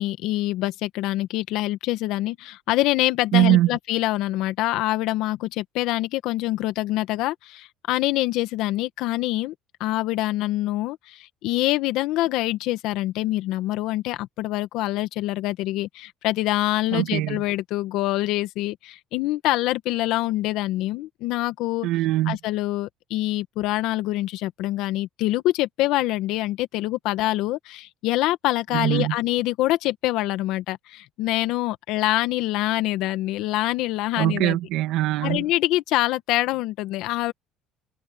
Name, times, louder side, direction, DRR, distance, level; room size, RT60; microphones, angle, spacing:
voice 1, 0.0-9.5 9.8-21.9 22.3-34.6 35.2-37.3, left 16 dB, 75° left, 1.6 m, -25 dB
voice 2, 3.3-3.7 16.9-17.4 21.8-22.4 28.7-29.2 34.2-35.4, right 15 dB, 75° right, 2.2 m, -22 dB
supercardioid pair, 80°, 0 cm